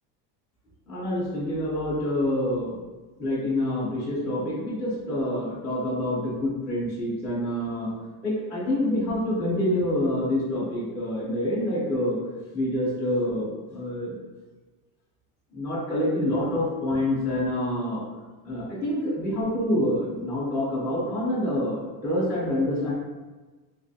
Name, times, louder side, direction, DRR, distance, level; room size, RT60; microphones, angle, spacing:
voice 1, 0.9-2.7 3.2-7.9 8.2-12.2 12.5-14.1 15.5-18.0 18.4-22.9, left 1 dB, 5° left, -10 dB, 0.4 m, -27 dB
3.2 x 2.4 x 2.6 m, 1.2 s
cardioid pair, 180°, 43 cm